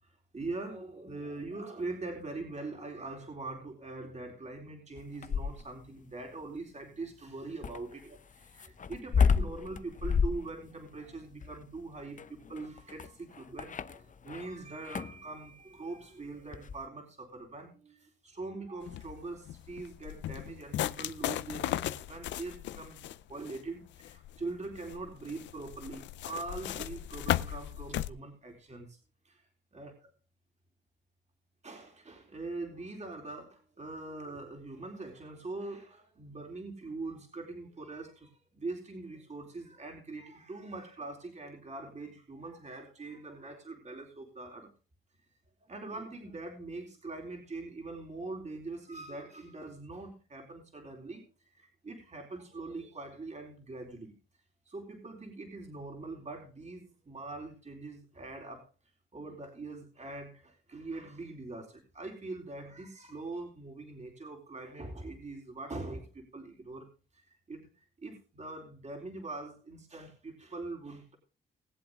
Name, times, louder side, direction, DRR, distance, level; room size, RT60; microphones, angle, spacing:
voice 1, 0.0-29.0 29.2-29.4 29.7-30.1 31.6-44.7 45.7-54.1 54.7-58.7 59.1-66.9 67.1-71.2, right 3 dB, 40° right, 1 dB, 4.0 m, -43 dB
sound 1, 5.0-5.9 7.6-14.5 14.8-15.2 16.5-16.8, left 6 dB, 45° left, 0.8 m, -31 dB
sound 2, 18.8-28.1, left 13 dB, 85° left, 0.6 m, -37 dB
20.5 x 8.0 x 3.7 m, 0.34 s
cardioid pair, 60°, 18 cm